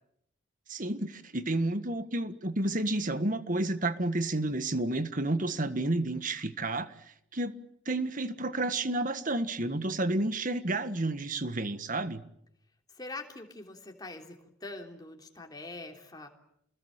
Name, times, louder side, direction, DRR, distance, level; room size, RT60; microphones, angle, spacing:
voice 1, 0.7-6.9 7.3-7.5 7.8-12.2, right 2 dB, 40° right, 11 dB, 1.7 m, -30 dB
voice 2, 13.0-16.3, left 2 dB, 20° left, 2 dB, 3.5 m, -43 dB
28.5 x 21.0 x 9.1 m, 0.75 s
head